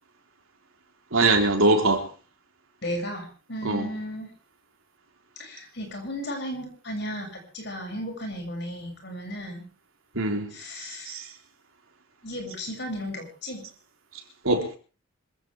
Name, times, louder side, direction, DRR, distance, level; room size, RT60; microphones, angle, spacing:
voice 1, 1.1-2.1 3.6-3.9 10.1-10.5 11.1-11.3 14.4-14.8, right 2 dB, 85° right, 3.8 m, -22 dB
voice 2, 2.8-4.3 5.4-7.3 7.5-9.6 10.5-11.2 12.2-13.6, equal, 55° left, 7.0 m, -34 dB
26.0 x 15.5 x 3.5 m
head